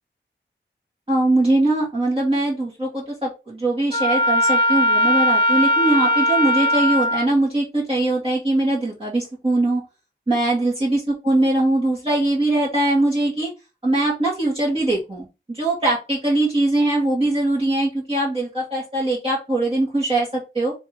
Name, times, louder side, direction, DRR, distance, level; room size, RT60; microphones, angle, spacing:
voice 1, 1.1-9.8 10.3-13.5 13.8-20.7, right 2 dB, 30° right, -6 dB, 1.8 m, -21 dB
Trumpet, 3.9-7.3, left 1 dB, 30° left, 1.2 m, -19 dB
3.4 x 2.9 x 4.5 m, 0.27 s
wide cardioid pair, 65°, 20 cm